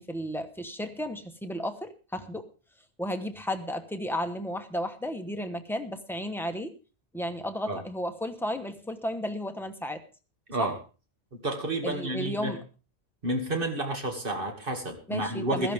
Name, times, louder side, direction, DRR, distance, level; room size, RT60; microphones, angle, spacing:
voice 1, 0.0-2.5 3.0-6.8 7.1-10.0 10.6-10.7 11.8-12.6 15.1-15.7, equal, ahead, 7 dB, 1.0 m, -33 dB
voice 2, 11.4-12.6 13.2-15.7, right 1 dB, 55° right, 3 dB, 2.4 m, -30 dB
16.0 x 13.5 x 3.5 m, 0.33 s
omnidirectional pair, 1.1 m